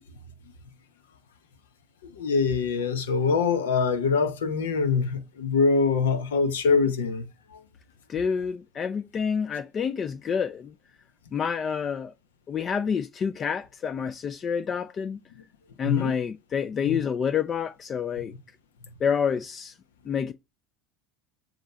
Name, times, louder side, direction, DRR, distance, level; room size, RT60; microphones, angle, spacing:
voice 1, 2.2-7.3 15.8-16.1 16.8-17.0, left 5 dB, 85° left, 1.0 m, -24 dB
voice 2, 8.1-10.7 11.3-12.1 12.5-15.2 15.8-18.3 19.0-19.7 20.1-20.3, left 7 dB, 40° left, 0.4 m, -28 dB
7.8 x 3.0 x 5.0 m
hypercardioid pair, 80°, 0 cm